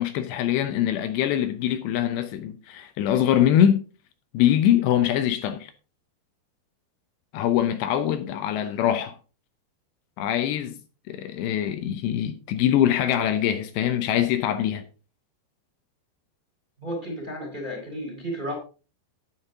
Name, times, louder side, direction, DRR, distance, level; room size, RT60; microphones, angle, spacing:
voice 1, 0.0-3.8 4.3-5.7 7.3-9.2 10.2-10.7 11.1-14.8, left 10 dB, 80° left, 3.0 m, -23 dB
voice 2, 16.8-18.6, equal, 10° right, 3.8 m, -33 dB
9.7 x 9.5 x 3.8 m
omnidirectional pair, 5.1 m